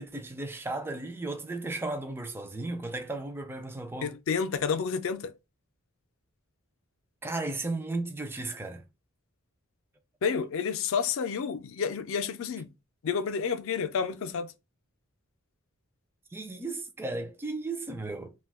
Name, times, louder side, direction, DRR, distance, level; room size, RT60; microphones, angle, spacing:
voice 1, 0.0-4.1 7.2-8.8 16.3-18.3, right 2 dB, 10° right, 0.3 m, -35 dB
voice 2, 4.0-5.3 10.2-12.7 13.0-14.5, left 6 dB, 65° left, 0.4 m, -30 dB
2.6 x 2.3 x 3.4 m
head